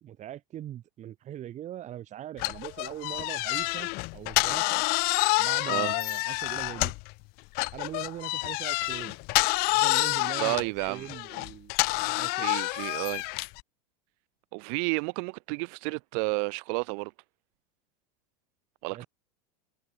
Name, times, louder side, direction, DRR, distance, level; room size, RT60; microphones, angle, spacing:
voice 1, 0.0-4.8 5.4-6.9 7.7-9.2 9.7-11.7 12.1-12.5 18.9-19.1, right 12 dB, 35° right, 3.4 m, -41 dB
sound 1, 2.4-7.1 7.5-13.6, left 27 dB, 50° left, 0.7 m, -28 dB
voice 2, 10.4-11.1 12.4-13.3 14.5-17.1 18.8-19.0, right 40 dB or more, 60° right, 1.9 m, -31 dB
supercardioid pair, 110°, 20 cm